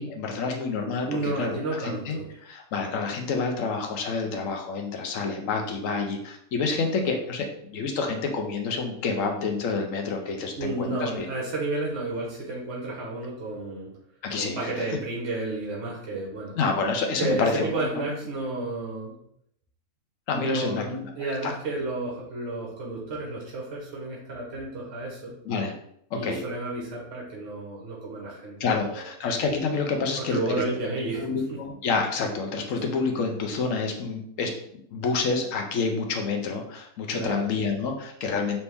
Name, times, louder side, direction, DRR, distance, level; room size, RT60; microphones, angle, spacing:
voice 1, 0.0-1.6 1.8-11.3 14.2-14.9 16.6-18.1 20.3-21.5 25.4-25.7 26.1-26.4 28.6-30.4 31.2-34.5 34.9-38.6, left 4 dB, 65° left, 3 dB, 1.1 m, -28 dB
voice 2, 1.1-2.3 10.6-13.9 14.3-16.6 17.2-19.1 20.3-25.3 26.1-29.0 30.2-31.6 37.1-37.5, right 2 dB, 50° right, -4 dB, 1.5 m, -31 dB
4.2 x 2.9 x 3.5 m, 0.70 s
omnidirectional pair, 1.5 m